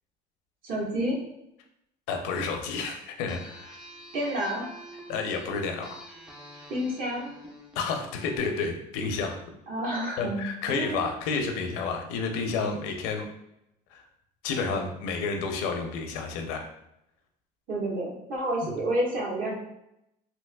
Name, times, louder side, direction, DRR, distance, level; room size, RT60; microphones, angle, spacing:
voice 1, 0.6-1.2 4.1-4.6 6.7-7.3 9.7-11.0 17.7-19.5, right 1 dB, 55° right, -3 dB, 1.2 m, -29 dB
voice 2, 2.1-3.7 5.1-6.1 7.8-9.4 10.2-13.3 13.9-14.0 14.4-16.7, left 4 dB, 85° left, 4 dB, 0.5 m, -30 dB
sound 1, 3.3-8.4, equal, 5° right, 0.6 m, -47 dB
3.2 x 2.8 x 2.2 m, 0.81 s
cardioid pair, 115°, 17 cm